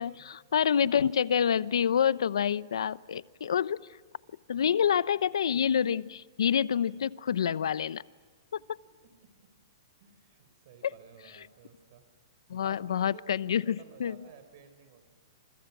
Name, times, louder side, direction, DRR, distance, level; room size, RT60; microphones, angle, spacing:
voice 1, 0.0-3.9 4.5-8.0 12.5-14.1, left 8 dB, 85° left, 18 dB, 0.8 m, -27 dB
voice 2, 9.0-9.5 10.0-12.0 12.6-15.1, right 7 dB, 45° right, 9 dB, 4.7 m, -54 dB
29.5 x 27.5 x 6.1 m, 1.5 s
hypercardioid pair, 165°, 3 cm